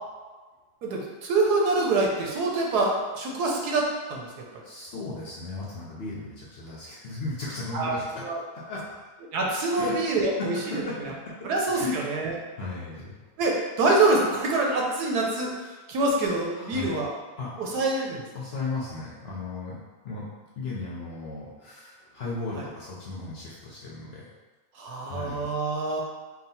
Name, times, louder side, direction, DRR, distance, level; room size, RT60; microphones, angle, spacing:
voice 1, 0.8-4.5 7.7-7.9 8.2-8.4 9.3-10.5 11.4-12.4 13.4-15.6 15.9-17.1 17.6-18.2 22.6-22.7 24.8-26.0, right 2 dB, 90° right, -1 dB, 1.3 m, -25 dB
voice 2, 4.5-8.2 8.5-8.8 9.7-10.1 10.4-11.3 11.7-12.0 12.5-13.2 16.5-17.0 17.4-17.5 18.3-20.3 20.6-24.3 25.1-25.5, left 3 dB, 55° left, -5 dB, 0.7 m, -36 dB
3.9 x 2.4 x 4.0 m, 1.3 s
omnidirectional pair, 1.6 m